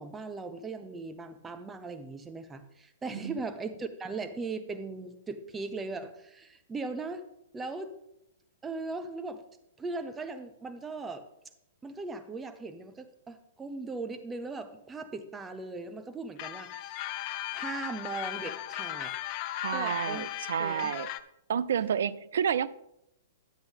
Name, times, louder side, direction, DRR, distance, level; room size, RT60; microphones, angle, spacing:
voice 1, 0.0-7.2 7.5-7.9 8.6-9.4 9.8-11.2 11.8-17.1 17.5-19.1 19.7-20.2 20.6-20.9, right 3 dB, 15° right, 9 dB, 0.8 m, -39 dB
sound 1, 16.4-21.2, left 14 dB, 40° left, 0.5 m, -37 dB
voice 2, 19.6-21.1 21.5-22.7, right 8 dB, 70° right, 18 dB, 0.4 m, -30 dB
10.0 x 7.8 x 3.6 m, 0.82 s
hypercardioid pair, 120°, 0 cm